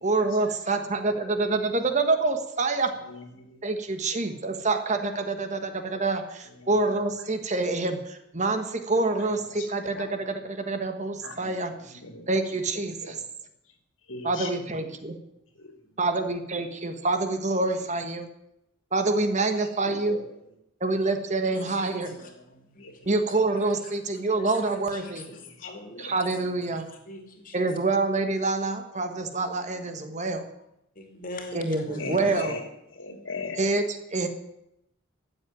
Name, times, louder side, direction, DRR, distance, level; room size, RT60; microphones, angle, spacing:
voice 1, 0.0-2.9 3.6-12.0 12.3-13.2 14.2-15.1 16.0-18.3 18.9-20.2 20.8-22.1 23.0-25.2 26.0-26.9 27.5-30.4 31.5-32.6 33.6-34.3, right 3 dB, 35° right, 7 dB, 1.4 m, -27 dB
voice 2, 3.1-3.7 9.6-9.7 10.0-10.1 11.2-11.5 11.9-12.3 14.1-14.5 14.8-14.9 15.6-15.7 19.8-20.2 22.1-22.2 22.8-22.9 23.3-23.4 25.6-26.1 32.0-32.6 33.0-33.6, left 3 dB, 75° left, 5 dB, 2.6 m, -38 dB
voice 3, 24.2-25.1 25.6-26.1 27.1-27.7 31.0-31.6 31.8-32.1, left 2 dB, 40° left, 4 dB, 2.6 m, -41 dB
14.0 x 7.9 x 9.3 m, 0.83 s
head